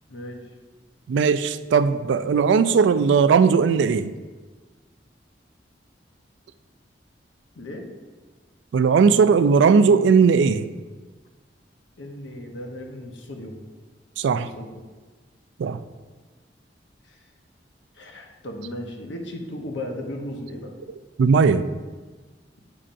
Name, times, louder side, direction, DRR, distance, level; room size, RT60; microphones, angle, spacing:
voice 1, 0.1-0.4 7.5-7.9 12.0-13.6 14.3-14.8 17.0-17.3 17.9-20.7, left 1 dB, 85° left, 0.8 m, -36 dB
voice 2, 1.1-4.1 8.7-10.7 14.2-14.5 15.6-15.8 21.2-21.7, right 5 dB, 75° right, 0.3 m, -18 dB
8.6 x 5.4 x 2.6 m
head